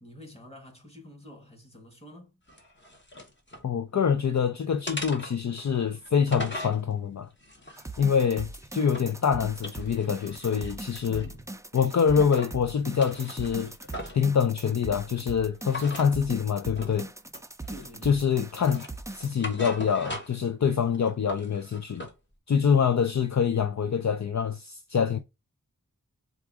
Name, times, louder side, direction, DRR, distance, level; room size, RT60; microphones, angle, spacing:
voice 1, 0.0-2.3 11.1-11.5 17.7-18.2, equal, 20° left, 1.8 m, -47 dB
sound 1, 2.5-3.7 4.1-4.4 4.9-6.8 7.4-9.2 9.5-11.4 11.8-12.5 12.9-14.3 15.7-16.1 16.8-17.0 17.3-18.0 18.5-20.5 20.8-22.1, left 1 dB, 35° left, 1.3 m, -40 dB
voice 2, 3.6-7.3 8.0-11.2 11.7-13.7 14.1-17.1 18.0-18.9 19.2-22.1 22.5-25.2, left 7 dB, 55° left, 0.5 m, -25 dB
sound 2, 7.8-19.3, right 2 dB, 10° right, 0.4 m, -41 dB
4.5 x 2.5 x 4.6 m
wide cardioid pair, 55°, 34 cm